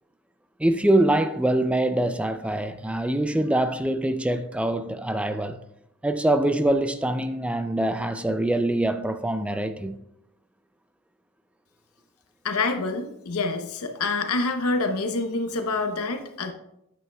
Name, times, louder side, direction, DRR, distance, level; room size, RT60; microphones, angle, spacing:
voice 1, 0.6-5.6 6.0-10.0, right 1 dB, 5° right, 0.4 m, -24 dB
voice 2, 12.4-16.5, left 3 dB, 80° left, 0.8 m, -27 dB
9.1 x 8.3 x 2.3 m
head